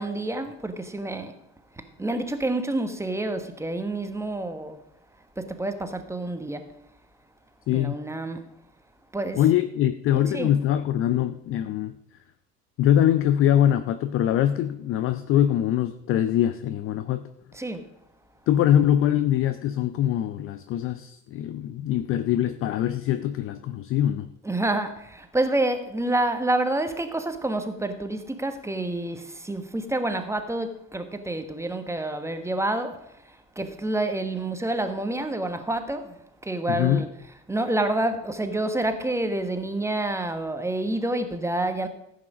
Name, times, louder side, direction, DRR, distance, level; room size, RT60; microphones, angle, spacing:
voice 1, 0.0-1.3 2.0-4.8 5.4-6.7 7.7-8.5 9.1-9.4 10.3-10.5 17.5-17.9 24.4-33.0 33.3-36.2 36.4-37.1 37.5-41.9, right 2 dB, 5° right, 1.3 m, -28 dB
voice 2, 9.4-11.9 12.8-17.3 18.5-24.3 36.7-37.0, left 11 dB, 30° left, 0.5 m, -23 dB
14.5 x 7.9 x 5.1 m
figure-of-eight pair, 70°, 48 cm